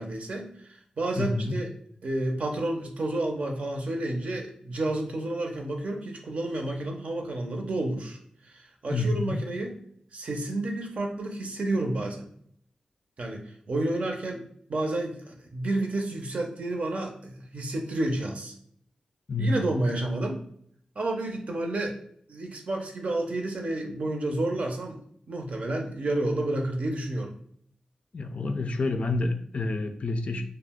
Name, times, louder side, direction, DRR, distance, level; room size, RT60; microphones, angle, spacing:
voice 1, 0.0-1.7 2.0-8.2 8.5-9.7 10.1-12.3 13.2-14.4 14.7-18.5 19.4-20.4 21.0-22.0 22.3-25.0 25.3-27.3, right 2 dB, 60° right, 2 dB, 0.6 m, -30 dB
voice 2, 1.2-1.6 8.9-9.4 19.3-19.7 28.1-30.4, left 2 dB, 55° left, 6 dB, 0.4 m, -28 dB
2.4 x 2.1 x 3.5 m, 0.65 s
cardioid pair, 65°, 3 cm